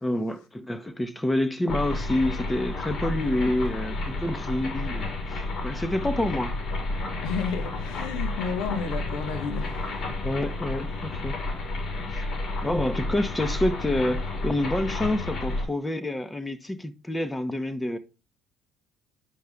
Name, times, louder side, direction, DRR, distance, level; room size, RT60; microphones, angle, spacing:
voice 1, 0.0-6.5 10.2-11.5 12.1-12.3 12.6-18.0, left 1 dB, 15° left, 1.1 m, -28 dB
sound 1, 1.7-15.6, left 2 dB, 65° left, 4.2 m, -31 dB
voice 2, 7.2-10.1, left 5 dB, 80° left, 1.3 m, -32 dB
9.2 x 5.4 x 3.5 m
supercardioid pair, 80°, 0 cm